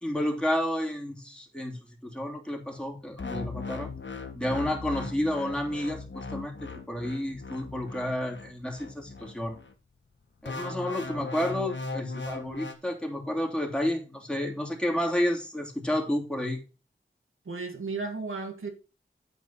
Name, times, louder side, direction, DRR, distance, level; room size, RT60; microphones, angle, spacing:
voice 1, 0.0-3.9 4.3-9.6 10.4-16.6, left 1 dB, 5° left, 2.9 m, -31 dB
sound 1, 3.2-9.7 10.5-12.7, left 3 dB, 65° left, 1.5 m, -38 dB
voice 2, 17.5-18.7, right 4 dB, 80° right, 1.9 m, -34 dB
9.6 x 4.4 x 5.7 m
cardioid pair, 45°, 21 cm